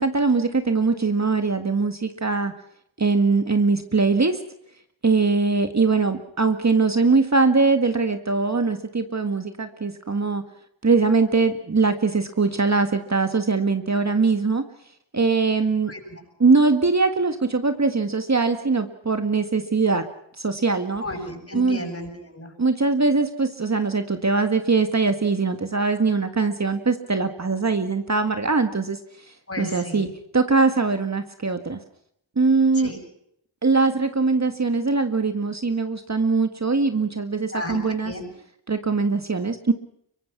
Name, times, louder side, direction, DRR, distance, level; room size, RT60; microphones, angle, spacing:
voice 1, 0.0-2.5 3.0-4.4 5.0-10.4 10.8-14.6 15.1-15.9 16.4-20.0 20.4-21.0 21.5-21.8 22.6-29.0 29.6-30.1 30.3-31.8 32.4-32.9 33.6-38.1 38.7-39.7, right 4 dB, 35° right, 7 dB, 1.8 m, -21 dB
voice 2, 15.9-16.2 21.0-22.5 29.5-30.1 32.7-33.0 37.5-38.2, left 1 dB, 30° left, 4 dB, 7.6 m, -34 dB
24.5 x 23.5 x 6.0 m, 0.73 s
wide cardioid pair, 80°, 46 cm